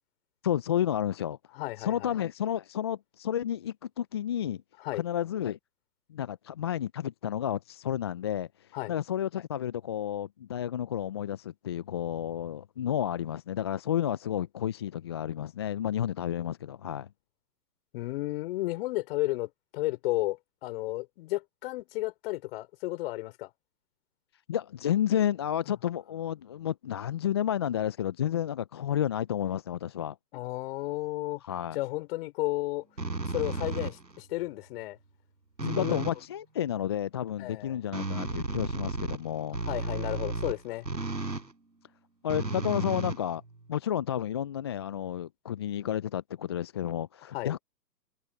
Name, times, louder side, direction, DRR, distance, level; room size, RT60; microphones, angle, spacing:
voice 1, 0.4-1.4 1.8-4.6 4.9-5.6 6.1-17.1 24.5-30.2 31.4-31.8 35.6-39.6 42.2-43.4 43.7-47.6, left 10 dB, 15° left, 0.5 m, -31 dB
voice 2, 1.5-2.1 4.8-5.0 8.7-8.9 17.9-23.5 30.3-31.4 31.7-32.9 33.2-35.0 35.8-36.0 37.4-37.8 39.7-40.9 47.3-47.5, left 18 dB, 35° left, 5.6 m, -33 dB
sound 1, 33.0-34.2 35.6-36.2 37.9-41.5 42.3-43.8, right 3 dB, 90° right, 5.2 m, -33 dB
figure-of-eight pair, 130°, 50 cm